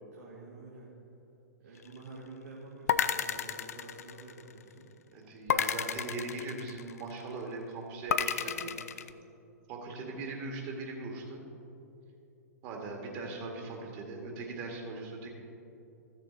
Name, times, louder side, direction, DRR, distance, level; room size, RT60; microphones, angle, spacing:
voice 1, 0.2-0.9 1.6-4.9, right 3 dB, 65° right, -6 dB, 1.9 m, -49 dB
sound 1, 2.9-4.6 5.5-7.1 8.1-9.1, left 8 dB, 60° left, 0.4 m, -31 dB
voice 2, 5.1-9.0 9.7-11.4 12.6-15.3, right 3 dB, 35° right, 1 dB, 1.8 m, -40 dB
14.5 x 6.7 x 4.0 m, 2.8 s
figure-of-eight pair, 105°, 9 cm